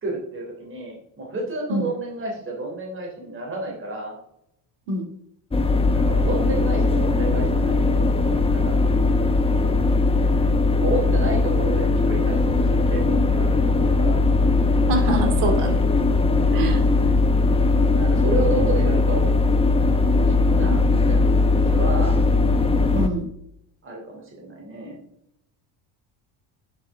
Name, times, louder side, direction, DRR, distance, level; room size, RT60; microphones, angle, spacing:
voice 1, 0.0-4.2 5.9-8.8 9.2-9.3 10.8-14.2 17.9-19.3 20.1-22.2 23.8-25.0, right 2 dB, 25° right, -1 dB, 3.4 m, -31 dB
sound 1, 5.5-23.1, left 3 dB, 15° left, 0.8 m, -19 dB
voice 2, 14.9-15.8 16.5-16.8 22.9-23.3, right 1 dB, 70° right, 4 dB, 2.6 m, -24 dB
9.6 x 8.1 x 3.6 m, 0.77 s
cardioid pair, 125°, 44 cm